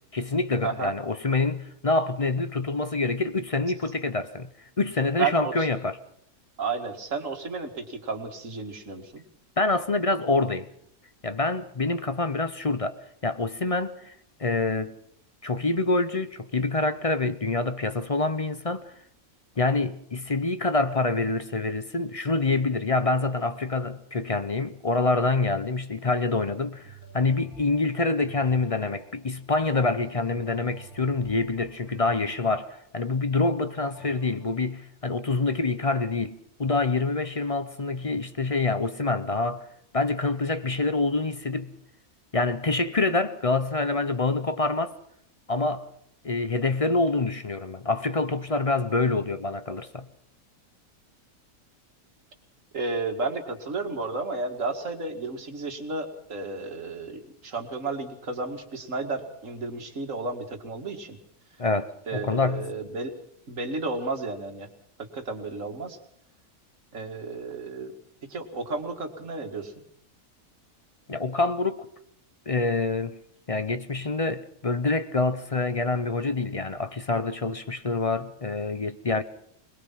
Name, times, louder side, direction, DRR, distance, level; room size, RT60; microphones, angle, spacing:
voice 1, 0.1-4.5 4.8-6.0 9.6-10.7 11.2-12.9 13.2-14.1 14.4-14.9 15.4-18.9 19.6-39.6 39.9-41.7 42.3-44.9 45.5-45.9 46.2-50.1 61.6-62.7 71.1-71.9 72.5-73.2 73.5-79.2, left 3 dB, 30° left, 0.7 m, -26 dB
voice 2, 0.6-0.9 5.2-5.7 6.6-9.2 52.7-61.2 62.1-63.1 63.5-64.7 65.0-66.0 66.9-67.9 68.2-69.7, right 3 dB, 60° right, 2.5 m, -32 dB
sound 1, 26.8-34.7, right 4 dB, 80° left, 3.8 m, -51 dB
21.5 x 21.0 x 5.8 m
omnidirectional pair, 1.5 m